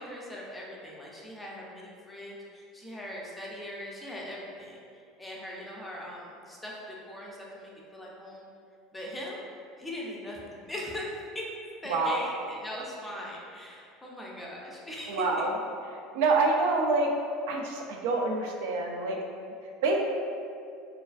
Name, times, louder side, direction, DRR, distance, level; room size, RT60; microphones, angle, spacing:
voice 1, 0.0-4.8 5.2-8.5 8.9-9.4 9.8-11.1 11.3-11.5 11.8-15.5, left 1 dB, 10° left, -4 dB, 0.4 m, -40 dB
voice 2, 15.1-15.5 16.1-17.1 17.5-19.2 19.8-20.0, right 3 dB, 80° right, 1 dB, 0.3 m, -26 dB
2.3 x 2.3 x 2.3 m, 2.3 s
supercardioid pair, 125°, 0 cm